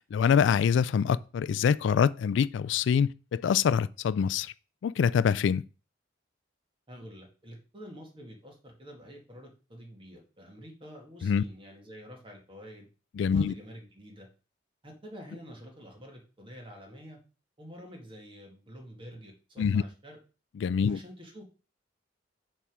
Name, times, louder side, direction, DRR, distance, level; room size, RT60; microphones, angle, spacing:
voice 1, 0.1-4.5 4.8-5.6 11.2-11.4 13.2-13.5 19.6-19.8 20.6-21.0, left 7 dB, 70° left, 0.3 m, -25 dB
voice 2, 6.9-12.9 13.3-14.3 14.8-17.2 17.6-20.2 20.9-21.4, equal, 30° right, 2.0 m, -48 dB
7.0 x 3.6 x 6.1 m
head